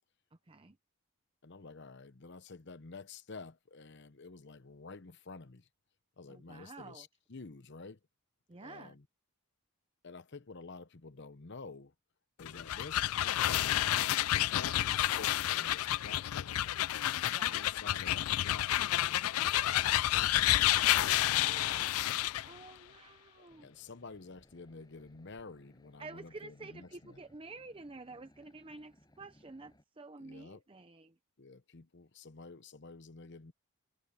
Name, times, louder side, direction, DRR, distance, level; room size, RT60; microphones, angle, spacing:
voice 1, 0.5-0.8 6.3-7.1 8.5-9.0 17.3-17.6 21.4-21.8 22.5-23.7 26.0-31.1, right 3 dB, 25° right, 0.7 m, -50 dB
voice 2, 1.4-5.7 6.2-8.0 8.6-9.1 10.0-11.9 12.4-13.9 14.3-16.8 17.4-20.5 21.5-21.9 23.4-27.2 30.2-30.6 31.4-33.5, left 4 dB, 55° left, 0.9 m, -50 dB
sound 1, 12.4-22.5, left 14 dB, 80° left, 0.4 m, -30 dB
sound 2, 23.5-29.8, equal, 20° left, 6.9 m, -65 dB
head